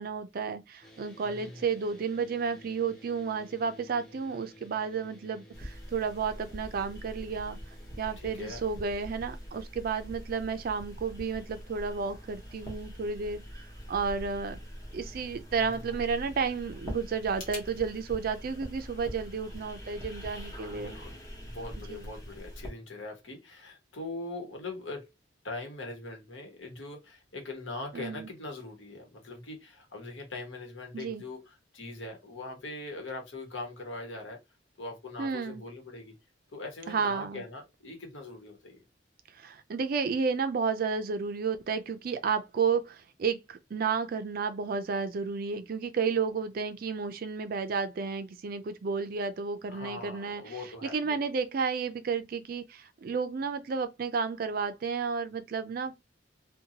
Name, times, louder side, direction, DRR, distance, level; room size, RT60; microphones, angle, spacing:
voice 1, 0.0-7.6 8.0-14.6 14.9-21.0 21.9-22.1 27.9-28.3 30.9-31.2 35.2-35.6 36.9-37.4 39.3-55.9, right 5 dB, 50° right, 0.4 m, -32 dB
sound 1, 0.8-20.7, equal, 5° left, 0.7 m, -56 dB
voice 2, 1.2-1.6 8.2-8.6 15.7-15.8 20.7-21.2 21.4-25.1 25.4-34.4 34.8-36.1 36.5-38.8 49.7-51.1, left 2 dB, 80° left, 1.1 m, -41 dB
sound 2, 5.5-22.7, equal, 20° left, 1.1 m, -44 dB
sound 3, 17.3-17.7, left 3 dB, 45° left, 1.2 m, -49 dB
2.8 x 2.2 x 2.7 m
head